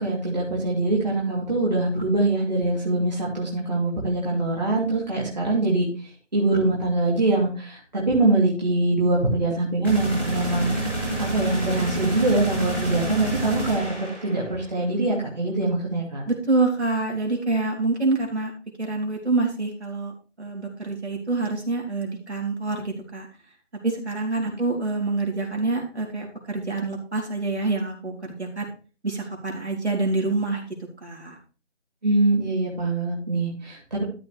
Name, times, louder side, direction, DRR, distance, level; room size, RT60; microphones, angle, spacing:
voice 1, 0.0-5.9 6.3-10.7 11.2-13.8 14.2-16.2 32.0-34.0, right 2 dB, 35° right, -4 dB, 2.6 m, -23 dB
sound 1, 9.8-14.6, right 1 dB, 10° left, 2.3 m, -28 dB
voice 2, 16.3-18.5 18.8-20.1 20.4-23.3 23.8-28.6 29.0-30.7 31.0-31.4, right 3 dB, 65° right, 1 dB, 3.7 m, -26 dB
13.0 x 4.8 x 4.8 m, 0.35 s
figure-of-eight pair, 175°, 36 cm